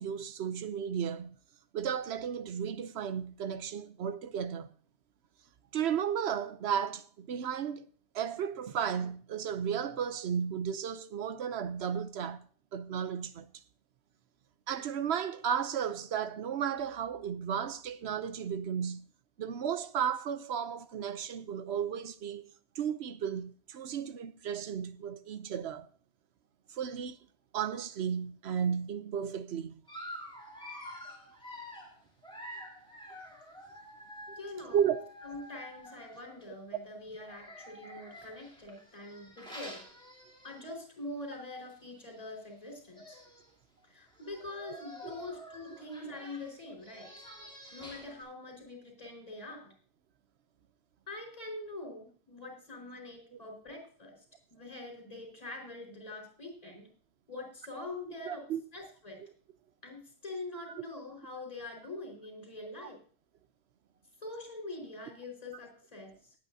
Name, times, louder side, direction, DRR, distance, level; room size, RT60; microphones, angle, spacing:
voice 1, 0.0-1.3 1.7-4.7 5.7-7.9 8.1-13.5 14.7-19.1 19.4-22.5 22.7-25.9 26.7-27.2 27.5-29.7 34.3-34.4 34.7-35.0 58.2-58.6 60.7-60.8, right 8 dB, 85° right, 1.0 m, -34 dB
Dog, 29.9-36.5 37.2-40.8 41.3-41.4 41.7-41.8 42.7-42.8 42.9-43.5 44.1-48.2, equal, 5° left, 3.5 m, -48 dB
voice 2, 34.3-34.8 35.2-39.8 40.4-43.2 43.8-47.1 47.7-49.7 51.1-54.2 54.5-56.9 57.3-58.4 58.7-59.2 59.8-63.0 64.2-66.1, left 2 dB, 35° left, 4.8 m, -44 dB
19.0 x 8.9 x 2.7 m
omnidirectional pair, 1.1 m